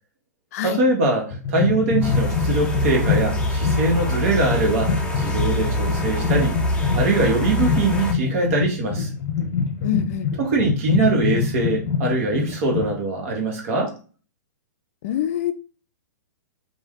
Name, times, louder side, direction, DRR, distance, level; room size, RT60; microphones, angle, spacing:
voice 1, 0.6-6.5 6.9-9.1 10.4-13.9, right 2 dB, 50° right, 1 dB, 1.2 m, -22 dB
sound 1, 1.3-12.9, left 6 dB, 35° left, 1.1 m, -25 dB
sound 2, 2.0-8.1, equal, 10° left, 0.6 m, -25 dB
voice 2, 9.8-10.3 15.0-15.5, left 10 dB, 50° left, 10 dB, 0.4 m, -25 dB
2.6 x 2.3 x 3.5 m, 0.36 s
hypercardioid pair, 130°, 10 cm